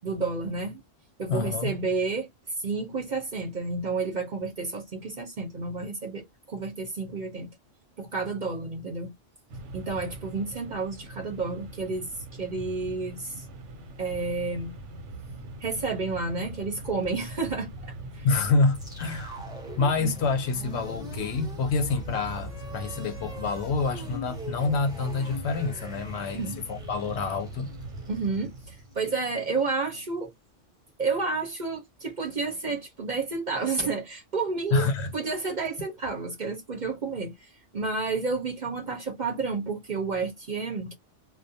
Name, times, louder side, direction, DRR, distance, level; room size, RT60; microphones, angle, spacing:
voice 1, 0.0-0.8 1.2-2.3 2.6-7.5 8.0-9.1 9.7-12.1 12.4-13.4 14.0-14.7 15.6-18.3 26.3-26.6 28.1-30.3 31.0-34.9 35.1-37.3 37.7-40.9, right 4 dB, 45° right, 0.7 m, -30 dB
voice 2, 1.3-1.8 18.2-19.4 19.8-27.7 34.7-35.1, left 4 dB, 70° left, 0.8 m, -27 dB
Mechanisms, 9.5-28.9, right 1 dB, 75° right, 0.9 m, -41 dB
sound 1, 18.7-28.9, right 1 dB, 5° right, 0.5 m, -42 dB
2.3 x 2.1 x 2.6 m
omnidirectional pair, 1.3 m